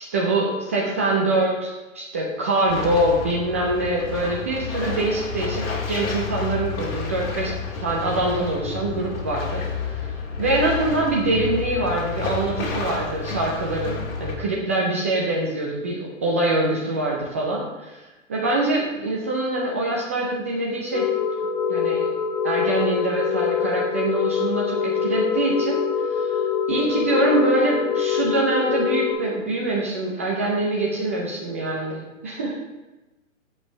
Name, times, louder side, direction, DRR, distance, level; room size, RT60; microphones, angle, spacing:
voice 1, 0.0-7.5 7.8-9.6 10.4-18.0 18.3-21.1 21.7-22.0 22.4-25.8 26.7-32.5, right 2 dB, 10° right, -3 dB, 0.3 m, -24 dB
sound 1, 2.7-14.3, left 5 dB, 45° left, 2.2 m, -30 dB
sound 2, 20.9-29.1, left 7 dB, 25° left, 2.6 m, -24 dB
15.0 x 5.4 x 3.2 m, 1.1 s
figure-of-eight pair, 125°, 40 cm